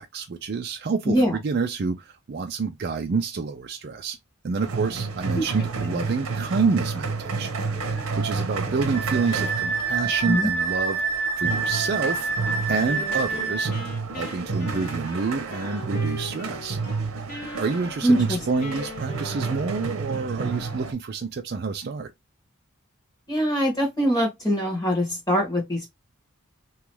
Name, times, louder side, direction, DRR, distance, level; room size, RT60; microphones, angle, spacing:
voice 1, 0.0-4.2 4.4-7.5 8.2-12.3 12.7-13.7 14.1-16.8 17.6-22.1, right 4 dB, 45° right, 0.4 m, -28 dB
voice 2, 1.0-1.4 5.4-5.5 5.9-6.0 10.2-10.5 18.0-18.4 23.3-25.9, equal, 20° left, 1.4 m, -23 dB
sound 1, 4.6-20.9, right 4 dB, 90° right, 0.7 m, -31 dB
Wind instrument woodwind instrument, 8.9-13.7, right 4 dB, 85° left, 1.0 m, -27 dB
Wind instrument woodwind instrument 2, 12.8-17.0 17.3-20.2, left 1 dB, 40° left, 1.2 m, -40 dB
3.0 x 2.4 x 3.1 m
head